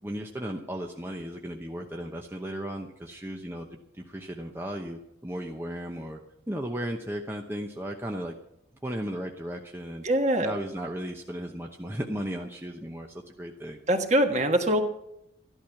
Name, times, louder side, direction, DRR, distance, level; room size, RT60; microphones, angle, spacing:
voice 1, 0.0-3.7 3.9-6.2 6.5-8.3 8.8-10.0 10.4-13.8, equal, 10° right, 1 dB, 0.9 m, -35 dB
voice 2, 10.0-10.5 13.9-14.8, right 1 dB, 35° right, 5 dB, 1.5 m, -23 dB
14.0 x 11.5 x 5.8 m, 0.79 s
head